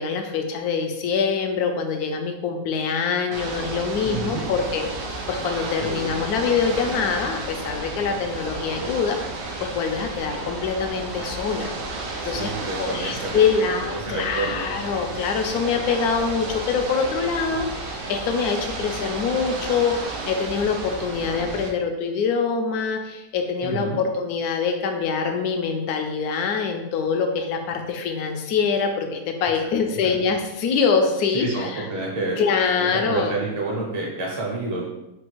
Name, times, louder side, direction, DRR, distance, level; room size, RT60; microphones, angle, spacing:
voice 1, 0.0-4.9 5.3-9.2 9.6-12.5 12.8-31.9 32.4-33.3, left 5 dB, 70° left, 4 dB, 1.1 m, -24 dB
Ocean / Boat Water vehicle, 3.3-21.7, right 2 dB, 90° right, 1.4 m, -32 dB
voice 2, 4.0-4.5 5.8-6.1 12.2-14.6 23.6-24.0 29.6-30.1 31.3-32.4 32.7-34.8, right 2 dB, 30° right, -3 dB, 0.5 m, -29 dB
4.2 x 2.3 x 4.5 m, 0.93 s
omnidirectional pair, 1.8 m